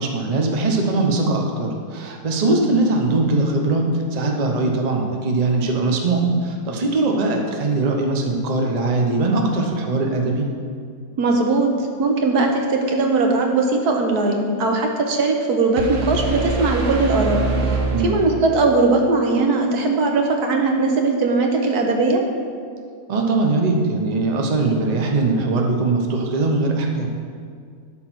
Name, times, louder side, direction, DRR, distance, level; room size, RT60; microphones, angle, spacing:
voice 1, 0.0-10.4 17.8-18.1 23.1-27.1, right 2 dB, 30° right, 1 dB, 0.8 m, -21 dB
voice 2, 11.2-11.7 12.0-17.4 18.0-22.2, right 3 dB, 75° right, 2 dB, 1.5 m, -19 dB
sound 1, 15.8-18.7, right 3 dB, 55° right, 1.2 m, -24 dB
12.0 x 4.0 x 6.2 m, 2.1 s
omnidirectional pair, 1.7 m